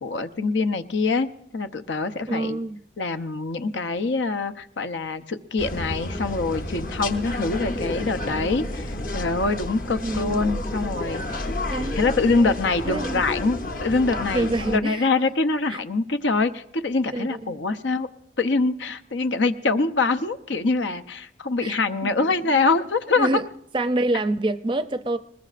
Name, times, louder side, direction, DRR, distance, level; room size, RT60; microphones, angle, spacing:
voice 1, 0.0-1.3 1.5-2.6 3.0-11.2 12.0-18.1 18.4-23.4, left 3 dB, 85° left, 0.8 m, -24 dB
voice 2, 2.3-2.8 10.0-10.4 11.7-12.1 12.8-13.2 14.3-15.1 15.7-15.8 17.1-17.6 21.6-21.8 22.5-22.6 23.2-23.5 23.7-25.2, right 2 dB, 25° right, 0.5 m, -26 dB
sound 1, 5.6-14.8, left 1 dB, 50° left, 1.0 m, -30 dB
21.0 x 20.5 x 2.5 m
head